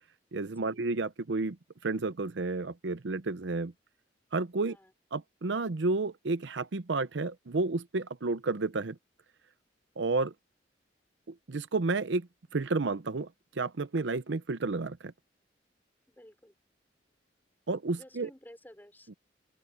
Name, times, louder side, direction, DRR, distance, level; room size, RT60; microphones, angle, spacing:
voice 1, 0.3-1.6 1.8-3.7 4.3-4.8 5.1-9.0 10.0-10.3 11.3-13.3 13.6-15.1 17.7-18.3 19.1-19.2, right 3 dB, 75° right, 0.7 m, -31 dB
voice 2, 16.1-16.6 17.9-19.1, left 1 dB, 10° left, 3.7 m, -54 dB
open air
head